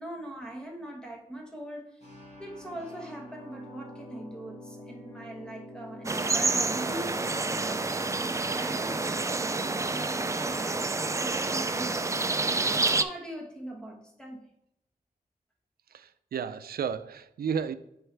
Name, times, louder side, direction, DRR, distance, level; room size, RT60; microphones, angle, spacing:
voice 1, 0.0-2.1 2.4-12.4 12.8-14.5, right 1 dB, 5° left, 1.3 m, -41 dB
sound 1, 2.0-7.4, left 1 dB, 50° left, 1.9 m, -46 dB
sound 2, 6.0-13.0, right 3 dB, 20° right, 0.3 m, -28 dB
voice 2, 15.9-17.7, right 7 dB, 85° right, 0.4 m, -33 dB
7.9 x 4.6 x 3.3 m
wide cardioid pair, 130°, 15 cm